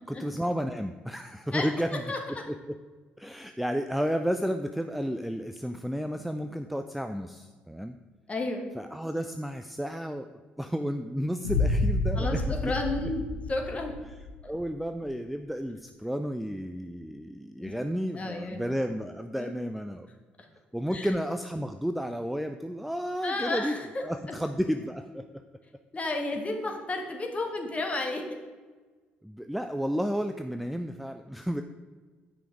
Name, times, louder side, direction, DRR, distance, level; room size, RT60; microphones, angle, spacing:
voice 1, 0.1-2.0 2.3-2.8 3.2-8.0 8.7-10.3 10.6-12.7 13.0-13.1 14.5-20.1 20.7-25.2 29.2-31.6, equal, ahead, 7 dB, 0.4 m, -32 dB
voice 2, 2.1-2.4 8.3-8.7 12.1-13.2 13.5-14.0 17.6-17.7 18.1-18.6 19.4-19.5 20.9-21.1 23.2-23.8 25.9-28.2, left 2 dB, 25° left, 2 dB, 1.6 m, -32 dB
sound 1, 11.4-14.4, left 2 dB, 80° left, 1.0 m, -29 dB
9.4 x 5.7 x 5.1 m, 1.4 s
figure-of-eight pair, 50°, 5 cm